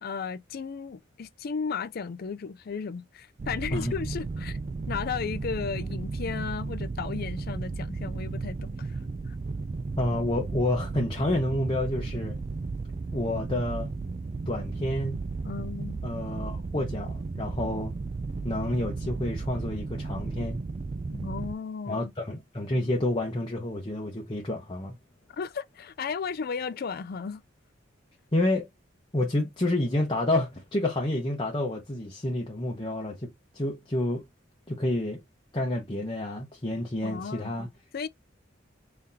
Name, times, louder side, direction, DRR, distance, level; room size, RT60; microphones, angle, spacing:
voice 1, 0.0-4.6 4.9-8.9 15.4-16.0 21.1-22.1 25.3-27.4 37.0-37.5 37.9-38.1, left 5 dB, 50° left, 0.4 m, -34 dB
sound 1, 3.4-21.5, right 3 dB, 35° right, 0.3 m, -34 dB
voice 2, 10.0-12.4 13.1-13.9 14.5-15.2 16.0-17.9 18.4-20.6 21.9-25.0 28.3-28.7 29.1-34.2 34.7-35.2 35.5-37.7, left 1 dB, 25° left, 0.8 m, -29 dB
3.8 x 3.4 x 2.7 m
head